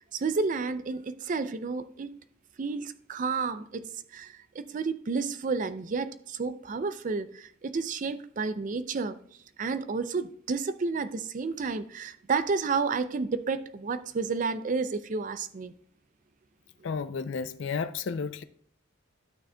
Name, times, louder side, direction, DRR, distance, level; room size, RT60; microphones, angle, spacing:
voice 1, 0.1-2.1 2.6-9.2 9.6-15.7, right 4 dB, 40° right, 0.4 m, -31 dB
voice 2, 16.8-18.4, left 5 dB, 60° left, 0.4 m, -32 dB
12.0 x 6.3 x 2.2 m
head